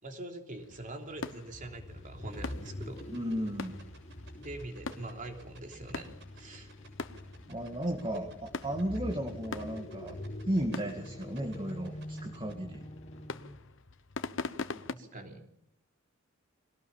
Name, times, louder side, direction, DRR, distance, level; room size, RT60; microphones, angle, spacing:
voice 1, 0.0-3.0 4.4-6.7 8.1-8.2 14.9-15.4, right 2 dB, 40° right, 3 dB, 3.2 m, -44 dB
sound 1, 0.6-15.0, left 3 dB, 70° left, 1.1 m, -44 dB
sound 2, 1.5-13.7, left 1 dB, 35° left, 1.6 m, -45 dB
sound 3, 2.3-12.5, right 4 dB, 60° right, 7.5 m, -55 dB
voice 2, 3.1-3.7 6.4-6.7 7.5-8.3 8.6-10.2 10.5-12.8, right 1 dB, 25° right, 3 dB, 2.1 m, -34 dB
22.5 x 18.0 x 7.2 m, 0.74 s
head